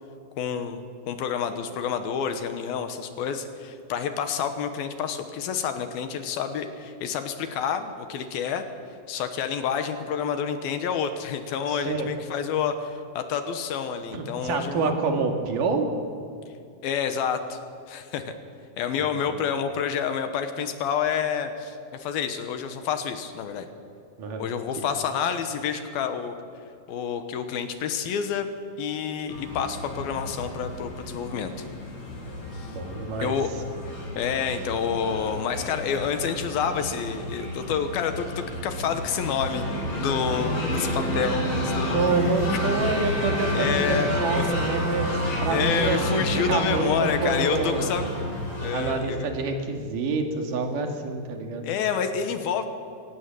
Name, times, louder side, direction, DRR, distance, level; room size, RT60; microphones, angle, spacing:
voice 1, 0.4-8.6 9.1-15.0 16.8-17.6 17.9-18.3 18.8-23.7 24.4-26.4 26.9-28.5 28.8-31.5 32.5-32.8 33.2-33.5 34.2-39.6 40.0-42.2 43.5-44.4 45.5-48.0 48.6-49.3 51.6-52.7, left 7 dB, 75° left, 8 dB, 2.8 m, -28 dB
voice 2, 11.7-12.1 14.1-15.9 19.0-19.4 24.2-24.5 24.8-24.9 32.7-33.4 41.9-47.9 48.7-51.6, right 4 dB, 60° right, 4 dB, 3.5 m, -27 dB
sound 1, 29.3-48.9, left 1 dB, 40° left, 6.0 m, -30 dB
Bowed string instrument, 42.4-45.6, right 2 dB, 10° right, 1.0 m, -37 dB
24.5 x 18.0 x 7.7 m, 2.5 s
omnidirectional pair, 4.7 m